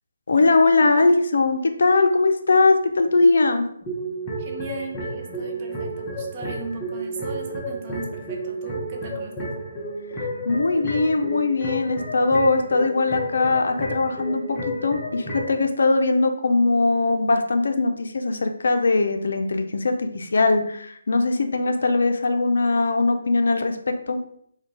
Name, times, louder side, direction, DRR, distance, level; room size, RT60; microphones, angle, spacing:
voice 1, 0.3-3.7 10.5-24.2, left 3 dB, 65° left, 6 dB, 0.5 m, -20 dB
sound 1, 3.8-15.6, right 1 dB, 15° left, 0.8 m, -32 dB
voice 2, 4.4-9.6, right 3 dB, 25° right, 1 dB, 0.6 m, -37 dB
4.8 x 2.2 x 3.2 m, 0.68 s
hypercardioid pair, 170°, 0 cm